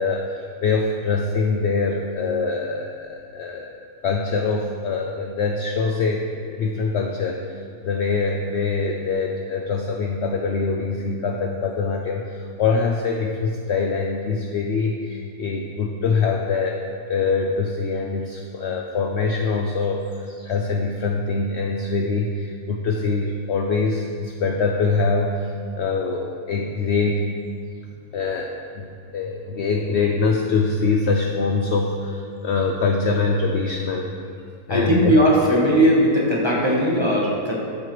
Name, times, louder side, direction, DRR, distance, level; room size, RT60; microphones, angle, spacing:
voice 1, 0.0-3.7 4.0-16.8 17.1-25.5 25.8-27.2 28.1-34.1 34.7-35.1, left 4 dB, 80° left, 2 dB, 0.6 m, -24 dB
voice 2, 34.7-37.6, equal, 20° right, -4 dB, 0.9 m, -18 dB
13.5 x 4.7 x 3.0 m, 2.4 s
omnidirectional pair, 1.7 m